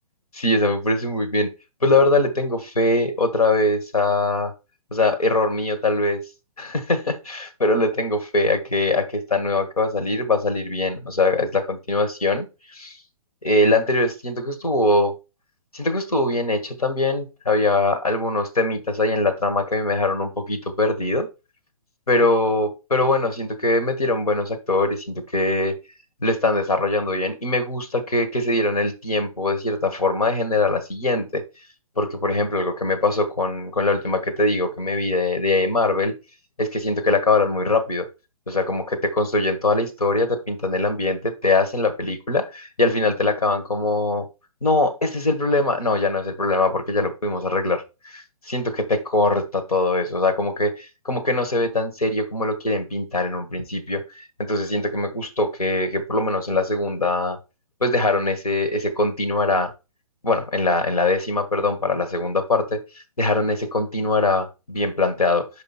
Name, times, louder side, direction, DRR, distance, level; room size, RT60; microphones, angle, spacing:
voice 1, 0.3-1.5 1.8-4.5 4.9-6.2 6.6-12.5 12.7-13.0 13.4-15.1 15.7-21.3 22.1-25.7 26.2-31.4 32.0-36.1 36.6-38.1 38.5-44.3 44.6-54.0 54.4-57.4 57.8-59.7 60.2-62.8 63.2-65.5, left 2 dB, 90° left, 1.6 m, -22 dB
5.4 x 5.2 x 4.2 m
hypercardioid pair, 130°, 19 cm